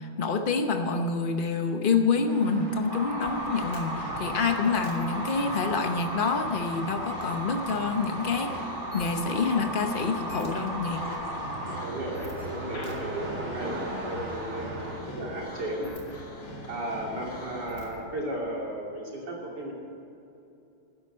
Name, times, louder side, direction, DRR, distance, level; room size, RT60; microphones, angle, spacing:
voice 1, 0.0-8.7 8.9-11.0, left 4 dB, 80° left, 6 dB, 0.4 m, -27 dB
sound 1, 2.3-15.0, right 1 dB, 40° right, 2.8 m, -42 dB
sound 2, 2.9-11.9, right 1 dB, 10° right, 1.6 m, -35 dB
sound 3, 3.2-18.0, equal, 55° left, 3.1 m, -41 dB
voice 2, 11.8-15.9 16.7-19.7, right 1 dB, 55° right, -2 dB, 3.3 m, -35 dB
13.0 x 10.0 x 8.6 m, 2.8 s
omnidirectional pair, 2.3 m